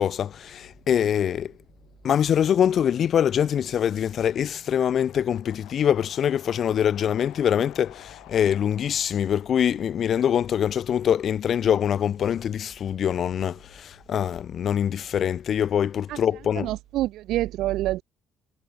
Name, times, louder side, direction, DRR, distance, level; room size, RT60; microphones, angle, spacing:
voice 1, 0.0-1.5 2.0-16.7, left 9 dB, 50° left, 0.9 m, -24 dB
sound 1, 4.6-10.7, left 19 dB, 85° left, 7.6 m, -51 dB
voice 2, 16.6-18.0, right 15 dB, 75° right, 0.3 m, -27 dB
cardioid pair, 100°, 0 cm